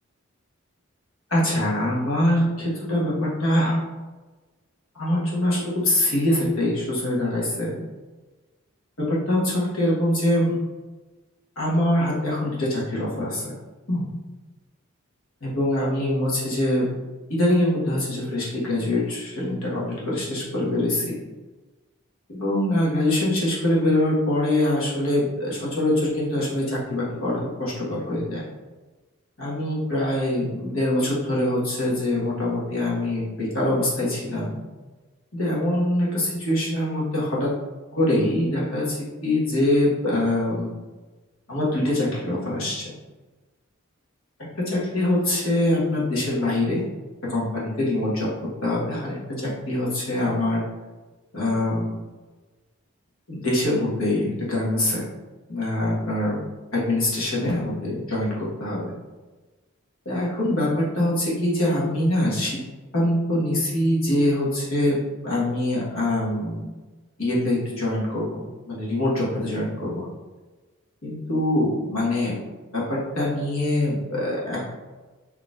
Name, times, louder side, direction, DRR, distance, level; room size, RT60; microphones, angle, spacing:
voice 1, 1.3-3.8 4.9-7.8 9.0-10.5 11.6-13.5 13.9-14.0 15.4-16.9 17.3-21.2 22.3-28.4 29.4-34.6 35.3-37.5 37.9-40.8 41.5-42.9 44.6-46.8 47.3-48.3 48.6-50.6 51.3-52.0 53.3-55.0 55.5-56.4 56.7-58.9 60.0-62.6 62.9-66.7 67.2-70.1 71.0-72.4 72.7-74.7, left 1 dB, 80° left, -6 dB, 1.4 m, -24 dB
4.2 x 3.1 x 2.4 m, 1.2 s
head